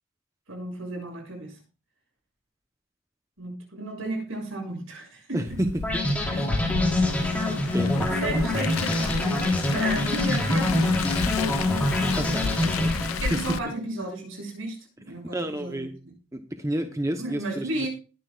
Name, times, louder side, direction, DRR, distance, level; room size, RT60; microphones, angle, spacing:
voice 1, 0.5-1.6 3.4-5.6 6.7-6.8 7.8-11.2 13.2-14.8 15.1-16.1 17.2-17.9, right 2 dB, 70° right, 1 dB, 6.8 m, -34 dB
voice 2, 5.3-5.9 6.3-6.6 7.7-8.1 12.2-13.4 15.3-15.9 16.3-17.7, right 1 dB, 15° right, 6 dB, 0.8 m, -30 dB
Car, 5.5-13.6, left 5 dB, 80° left, 0.6 m, -32 dB
sound 1, 5.8-13.5, left 2 dB, 5° left, 3.3 m, -25 dB
20.5 x 9.8 x 2.4 m, 0.35 s
head